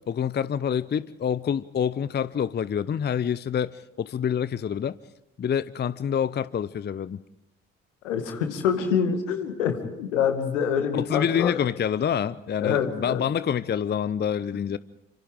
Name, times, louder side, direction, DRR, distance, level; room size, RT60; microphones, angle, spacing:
voice 1, 0.1-4.9 5.4-7.2 10.9-14.8, left 8 dB, 25° left, 18 dB, 0.7 m, -27 dB
voice 2, 8.0-11.6 12.6-13.3, left 7 dB, 75° left, 7 dB, 2.1 m, -26 dB
29.5 x 25.5 x 3.8 m, 0.86 s
figure-of-eight pair, 40°, 38 cm